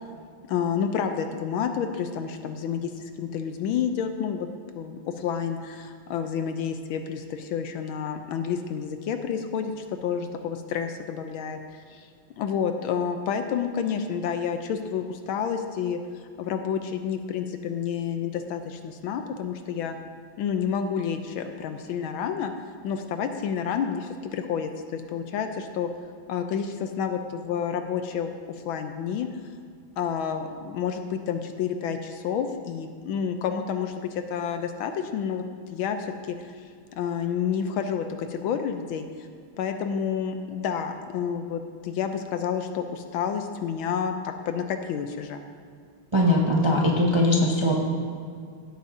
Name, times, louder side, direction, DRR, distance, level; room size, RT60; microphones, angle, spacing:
voice 1, 0.5-4.5 4.7-12.1 12.4-20.0 20.4-22.5 22.8-25.9 26.3-29.3 30.0-35.4 35.7-36.0 36.3-39.3 39.6-45.5, left 7 dB, 75° left, 7 dB, 1.3 m, -29 dB
voice 2, 46.1-47.7, left 1 dB, 25° right, -3 dB, 0.5 m, -21 dB
16.5 x 8.3 x 2.7 m, 2.2 s
omnidirectional pair, 2.4 m